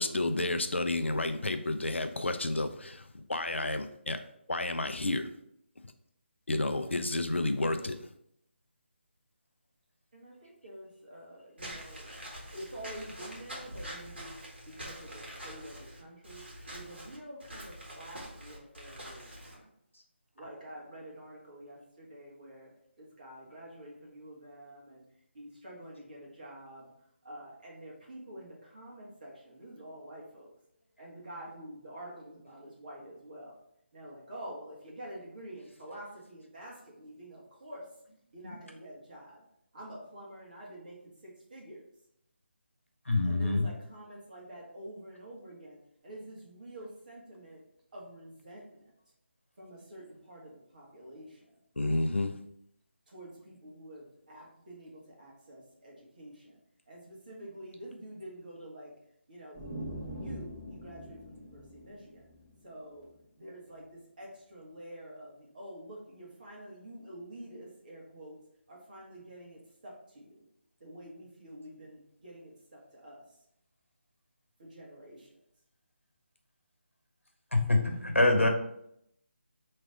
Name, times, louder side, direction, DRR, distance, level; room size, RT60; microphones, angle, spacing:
voice 1, 0.0-4.2 4.5-5.3 6.5-8.0 51.8-52.4, left 2 dB, 70° left, 8 dB, 0.5 m, -31 dB
voice 2, 10.1-12.1 12.5-14.3 14.7-16.4 16.7-19.6 20.4-22.7 23.0-25.0 25.3-26.9 27.2-30.5 31.0-33.5 33.9-37.9 38.3-39.4 39.7-41.8 43.2-47.6 47.9-48.9 49.6-51.4 53.1-56.6 56.9-58.9 59.3-62.2 62.6-63.1 63.4-68.4 68.7-70.4 70.8-73.2 74.6-75.3, right 1 dB, 45° right, -3 dB, 1.7 m, -48 dB
Walk footsteps / Squeak, 11.6-19.5, equal, 60° right, 1.8 m, -45 dB
voice 3, 43.0-43.7 77.5-78.5, left 2 dB, 85° left, 3 dB, 1.1 m, -25 dB
sound 1, 59.5-63.2, equal, 20° right, 1.9 m, -43 dB
4.6 x 3.3 x 3.5 m, 0.74 s
figure-of-eight pair, 155°, 7 cm